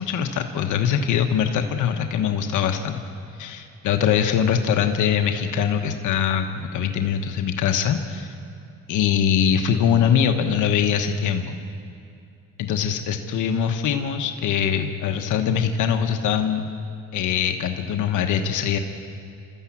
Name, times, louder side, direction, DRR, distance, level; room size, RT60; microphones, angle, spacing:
voice 1, 0.0-3.0 3.4-8.3 8.9-11.6 12.6-16.7 17.1-18.8, left 8 dB, 85° left, 5 dB, 1.3 m, -22 dB
27.0 x 13.5 x 8.6 m, 2.5 s
cardioid pair, 90°, 30 cm